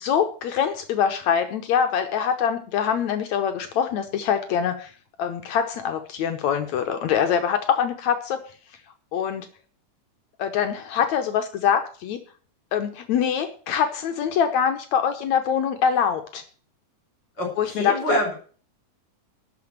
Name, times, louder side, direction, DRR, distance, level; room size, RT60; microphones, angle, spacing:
voice 1, 0.0-4.9 5.2-8.4 9.1-9.5 10.4-12.2 12.7-16.4 17.6-18.2, left 8 dB, 70° left, 7 dB, 2.2 m, -24 dB
voice 2, 17.4-18.3, equal, 35° left, 1 dB, 5.4 m, -25 dB
12.5 x 6.0 x 8.8 m, 0.41 s
omnidirectional pair, 3.5 m